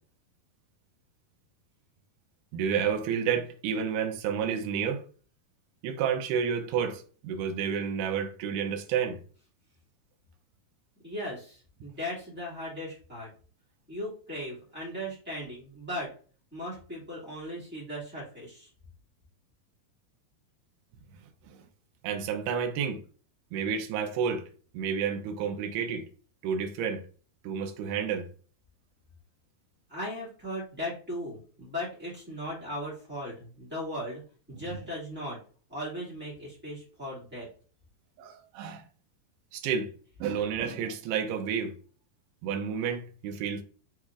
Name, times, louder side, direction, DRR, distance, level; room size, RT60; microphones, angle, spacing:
voice 1, 2.5-5.0 5.8-9.2 21.5-21.6 22.0-23.0 23.5-24.4 24.7-26.0 26.4-27.0 27.4-28.3 34.5-34.6 38.2-38.8 39.5-39.9 40.2-41.7 42.4-43.6, right 7 dB, 85° right, 1.8 m, -30 dB
voice 2, 11.0-13.3 13.9-16.1 16.5-18.7 29.9-34.2 34.5-35.4 35.7-37.5, equal, 15° right, 0.4 m, -37 dB
6.3 x 3.2 x 2.4 m
omnidirectional pair, 4.4 m